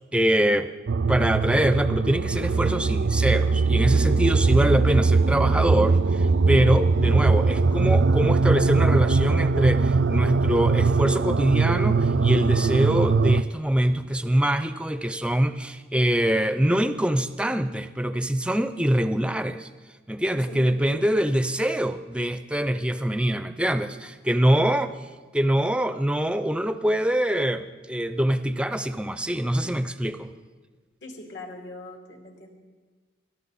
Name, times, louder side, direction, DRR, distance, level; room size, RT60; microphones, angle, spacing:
voice 1, 0.1-0.7 1.1-19.7 20.1-24.9 25.3-30.3, right 1 dB, 5° right, 11 dB, 0.5 m, -24 dB
sound 1, 0.9-13.4, right 4 dB, 75° right, 0.5 m, -21 dB
voice 2, 20.3-21.0 24.6-24.7 31.0-32.5, left 1 dB, 70° left, 0 dB, 2.8 m, -41 dB
23.5 x 12.0 x 4.2 m, 1.4 s
head